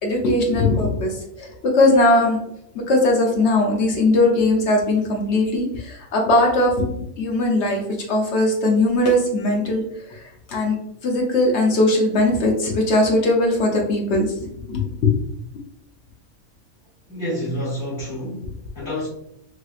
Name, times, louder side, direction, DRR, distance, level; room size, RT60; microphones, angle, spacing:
voice 1, 0.0-2.4 2.7-6.9 7.2-7.8 8.1-9.8 10.1-10.8 11.0-15.1, left 2 dB, 60° left, 1 dB, 0.8 m, -19 dB
voice 2, 17.1-19.1, equal, 40° left, -11 dB, 1.1 m, -29 dB
3.1 x 2.9 x 2.3 m, 0.76 s
omnidirectional pair, 1.5 m